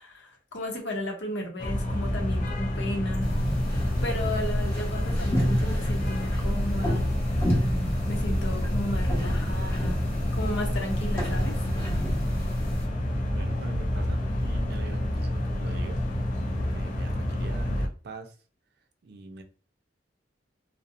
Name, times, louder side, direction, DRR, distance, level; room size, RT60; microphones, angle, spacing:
voice 1, 0.0-3.4 4.0-7.2 8.1-10.0 10.3-11.6, left 1 dB, 85° left, 2 dB, 0.7 m, -34 dB
sound 1, 1.6-17.9, left 1 dB, 45° left, 0.4 m, -28 dB
sound 2, 3.2-12.9, equal, 15° left, 1.0 m, -30 dB
voice 2, 13.3-16.3 16.6-18.4 19.0-19.4, right 3 dB, 60° right, 5 dB, 0.4 m, -43 dB
2.7 x 2.0 x 2.4 m, 0.38 s
head